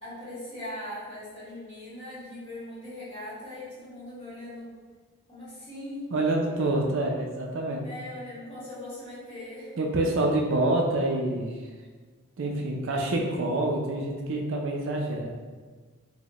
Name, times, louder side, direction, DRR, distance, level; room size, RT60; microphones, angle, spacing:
voice 1, 0.0-4.8 5.3-6.1 7.8-9.7, left 1 dB, 25° left, -10 dB, 1.5 m, -40 dB
voice 2, 6.1-7.8 9.8-11.6 12.4-15.3, right 2 dB, 60° right, 0 dB, 0.4 m, -27 dB
4.0 x 2.1 x 2.9 m, 1.4 s
head